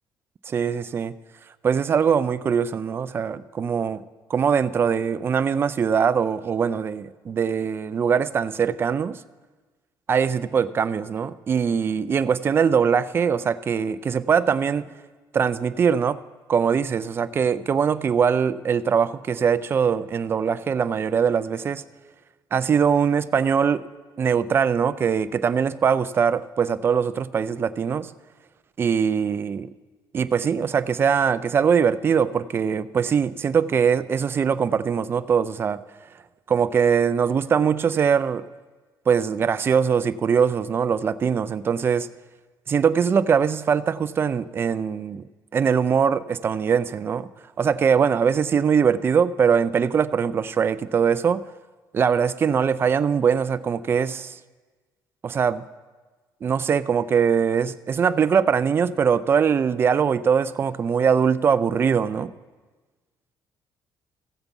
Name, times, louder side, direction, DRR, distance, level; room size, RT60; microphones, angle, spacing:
voice 1, 0.5-1.1 1.6-4.0 4.3-9.2 10.1-14.9 15.3-16.2 16.5-21.8 22.5-23.8 24.2-28.1 28.8-29.7 30.1-35.8 36.5-38.4 39.1-42.1 42.7-45.2 45.5-47.3 47.6-51.4 51.9-54.3 55.2-55.6 56.4-62.3, right 7 dB, 30° right, 14 dB, 0.4 m, -22 dB
15.5 x 7.1 x 5.3 m, 1.3 s
cardioid pair, 150°, 8 cm